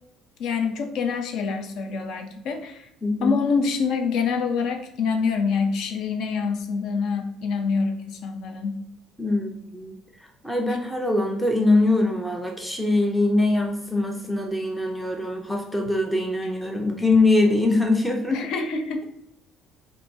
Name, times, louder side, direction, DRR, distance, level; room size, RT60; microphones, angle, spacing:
voice 1, 0.4-2.9 3.2-8.8 18.3-19.1, left 5 dB, 55° left, 6 dB, 0.6 m, -26 dB
voice 2, 3.0-3.4 9.2-10.0 10.4-18.4, left 2 dB, ahead, 1 dB, 0.5 m, -22 dB
7.6 x 2.6 x 2.7 m, 0.81 s
cardioid pair, 180°, 0 cm